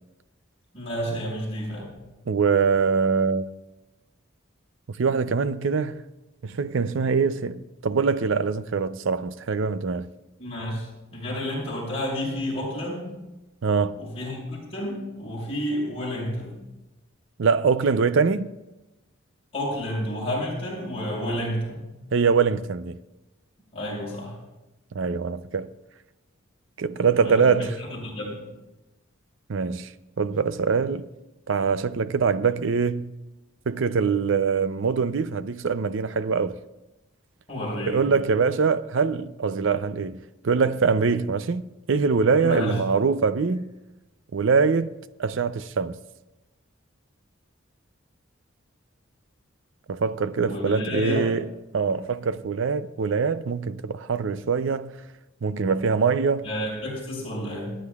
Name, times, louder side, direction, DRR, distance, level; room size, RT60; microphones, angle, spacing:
voice 1, 0.7-1.8 10.4-13.2 14.0-16.5 19.5-21.9 23.7-24.4 27.2-28.4 37.5-38.0 42.4-42.8 50.4-51.3 56.4-57.8, equal, 30° left, 5.7 m, -30 dB
voice 2, 2.3-3.5 5.0-6.0 6.4-10.1 13.6-14.0 17.4-18.5 22.1-23.0 24.9-25.7 26.8-27.8 29.5-29.9 30.2-31.1 31.5-33.1 33.7-36.6 37.9-40.2 40.4-43.7 44.3-44.9 45.2-46.0 49.9-51.5 51.7-54.9 55.4-56.5, right 5 dB, 65° right, 0.5 m, -23 dB
27.5 x 10.0 x 2.4 m
head